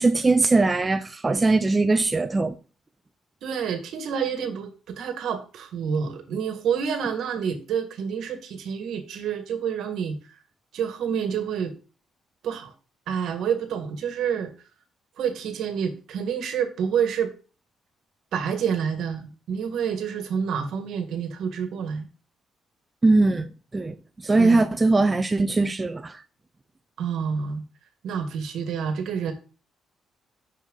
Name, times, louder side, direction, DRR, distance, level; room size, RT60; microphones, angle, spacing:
voice 1, 0.0-2.5 23.0-23.5 23.7-24.0 24.2-26.2, right 3 dB, 20° right, 0.5 m, -20 dB
voice 2, 3.4-10.2 10.7-11.7 12.4-12.7 13.1-14.5 15.2-17.3 18.3-22.1 24.4-24.7 27.0-27.6 28.0-29.3, right 7 dB, 75° right, 1.4 m, -28 dB
6.0 x 5.7 x 3.8 m
cardioid pair, 90°, 0 cm